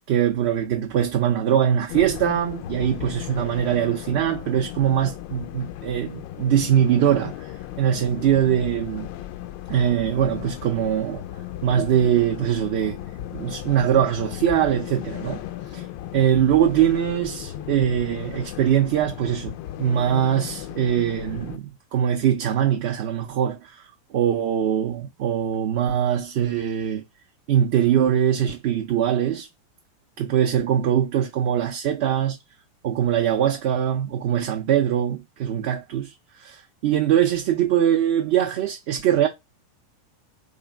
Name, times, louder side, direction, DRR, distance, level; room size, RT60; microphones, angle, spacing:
voice 1, 0.1-7.5 7.8-9.1 9.7-11.2 11.6-13.0 13.3-15.4 15.7-15.8 16.1-27.0 27.5-29.5 30.2-32.4 32.8-39.3, right 10 dB, 50° right, 0.5 m, -22 dB
sound 1, 1.9-21.6, left 12 dB, 50° left, 0.3 m, -36 dB
3.0 x 2.3 x 2.5 m
figure-of-eight pair, 90°, 0 cm